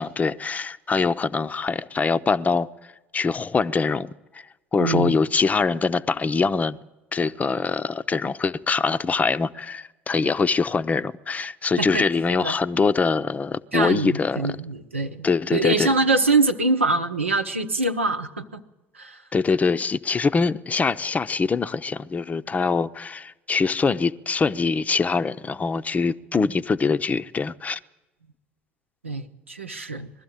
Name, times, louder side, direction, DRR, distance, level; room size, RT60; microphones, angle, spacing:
voice 1, 0.0-2.7 3.1-4.4 4.7-6.8 7.1-14.5 15.2-15.9 19.3-27.8, left 4 dB, 25° left, 0.7 m, -23 dB
voice 2, 4.8-5.1 11.8-12.0 12.4-12.6 13.7-18.6 18.9-19.2 29.0-30.1, right 3 dB, 85° right, 0.9 m, -24 dB
21.0 x 13.0 x 9.7 m
figure-of-eight pair, 60°, 7 cm